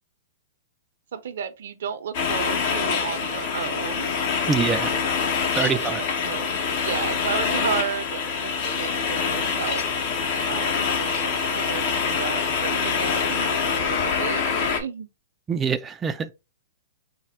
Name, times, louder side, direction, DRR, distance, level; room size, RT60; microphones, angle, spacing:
voice 1, 1.1-4.1 4.8-5.0 5.5-9.8 10.5-15.1, right 8 dB, 75° right, 0.6 m, -33 dB
sound 1, 2.1-14.8, left 6 dB, 55° left, 1.0 m, -25 dB
voice 2, 4.5-4.9 5.5-6.0 15.5-16.3, right 6 dB, 20° right, 0.3 m, -24 dB
4.2 x 2.1 x 4.1 m
hypercardioid pair, 125°, 0 cm